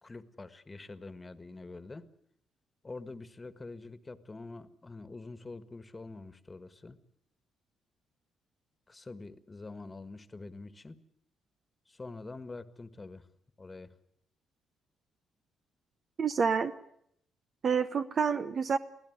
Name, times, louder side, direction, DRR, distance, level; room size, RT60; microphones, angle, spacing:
voice 1, 0.0-2.1 2.8-7.0 8.9-11.0 11.9-13.3 13.6-13.9, left 3 dB, 20° left, 12 dB, 1.6 m, -45 dB
voice 2, 16.2-16.7 17.6-18.8, right 6 dB, 50° right, 10 dB, 0.9 m, -28 dB
24.5 x 16.0 x 9.4 m, 0.74 s
cardioid pair, 90°, 0 cm